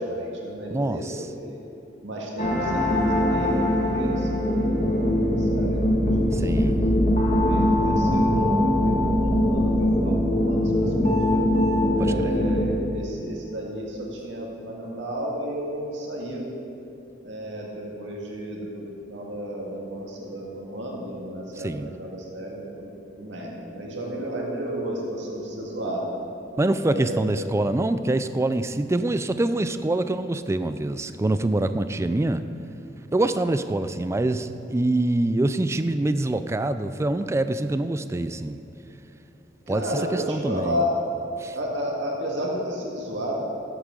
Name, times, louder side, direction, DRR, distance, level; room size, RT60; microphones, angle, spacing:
voice 1, 0.0-1.1 1.4-1.6 2.0-6.7 7.3-11.4 11.9-16.4 17.2-22.9 23.2-26.1 26.8-27.2 39.7-40.9 41.6-43.3, equal, 90° right, -2 dB, 2.0 m, -33 dB
voice 2, 0.7-1.3 6.3-6.8 12.0-12.4 21.6-21.9 26.6-32.4 33.1-38.6 39.7-39.8 40.1-40.8 41.4-41.6, right 2 dB, 15° right, 11 dB, 0.3 m, -25 dB
sound 1, 2.4-12.8, left 1 dB, 45° left, 1.8 m, -22 dB
14.0 x 8.2 x 3.8 m, 2.9 s
head